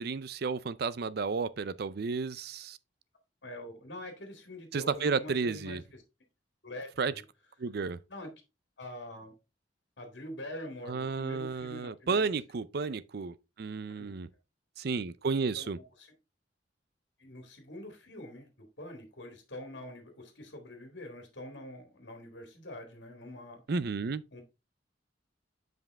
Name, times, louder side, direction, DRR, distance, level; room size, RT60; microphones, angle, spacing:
voice 1, 0.0-2.8 4.7-5.8 7.0-7.1 7.6-8.0 10.9-14.3 14.8-15.8 23.7-24.2, right 4 dB, 55° right, 0.5 m, -32 dB
voice 2, 3.4-5.8 6.6-7.2 8.1-8.3 8.8-9.3 10.0-12.3 12.8-12.9 14.0-14.1 15.6-15.7 16.0-16.1 17.2-23.6 24.3-24.4, left 1 dB, 65° left, 2.1 m, -45 dB
7.5 x 5.3 x 3.5 m
head